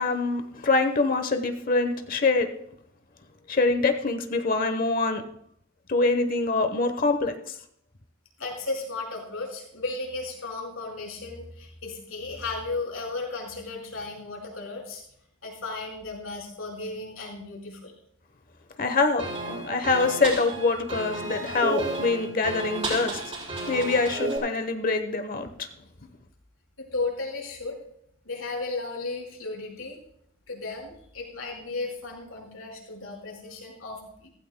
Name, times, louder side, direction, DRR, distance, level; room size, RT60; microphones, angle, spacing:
voice 1, 0.0-2.5 3.5-5.2 5.9-7.6 18.8-23.2 23.7-25.7, left 3 dB, 45° left, 8 dB, 1.0 m, -25 dB
voice 2, 8.4-15.0 15.4-17.9 26.8-27.8 28.2-30.0 30.5-34.3, left 3 dB, 85° left, -1 dB, 4.9 m, -35 dB
sound 1, 19.2-24.4, right 2 dB, 30° right, 4.5 m, -32 dB
16.5 x 15.0 x 2.2 m, 0.71 s
head